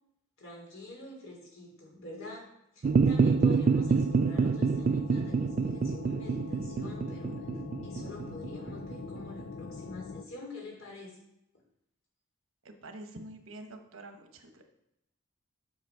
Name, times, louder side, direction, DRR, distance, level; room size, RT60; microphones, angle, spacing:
voice 1, 0.4-2.5 2.7-7.4 7.8-11.2, left 2 dB, 75° left, -2 dB, 3.6 m, -46 dB
sound 1, 2.8-10.2, left 4 dB, 50° left, 0.4 m, -43 dB
sound 2, 2.8-9.4, right 5 dB, 40° right, 0.3 m, -27 dB
voice 2, 12.6-14.6, right 1 dB, 80° right, 5 dB, 1.2 m, -47 dB
8.1 x 6.7 x 4.7 m, 0.83 s
head